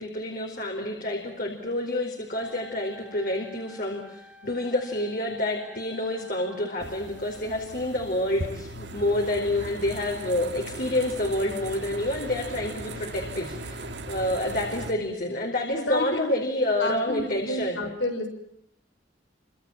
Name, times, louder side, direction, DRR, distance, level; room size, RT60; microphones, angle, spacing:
voice 1, 0.0-13.8 14.1-17.8, left 1 dB, 50° left, 1 dB, 4.8 m, -28 dB
Wind instrument woodwind instrument, 2.3-7.8, right 1 dB, 5° right, 3.4 m, -51 dB
sound 1, 6.8-14.9, right 1 dB, 70° right, 2.7 m, -38 dB
voice 2, 15.7-16.3 16.8-18.3, left 1 dB, 80° left, 6 dB, 6.7 m, -30 dB
29.0 x 26.5 x 7.4 m, 0.76 s
head